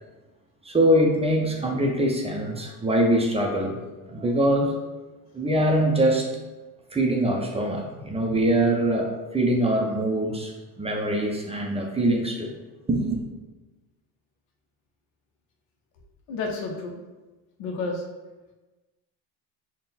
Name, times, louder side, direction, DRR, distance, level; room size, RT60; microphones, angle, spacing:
voice 1, 0.6-3.8 4.1-4.8 5.3-6.3 6.9-12.6 12.9-13.2, right 1 dB, 15° right, 0 dB, 0.4 m, -23 dB
voice 2, 8.0-8.4 16.3-17.0 17.6-18.0, left 3 dB, 70° left, 1 dB, 0.7 m, -31 dB
3.7 x 2.1 x 4.0 m, 1.2 s
supercardioid pair, 100°, 46 cm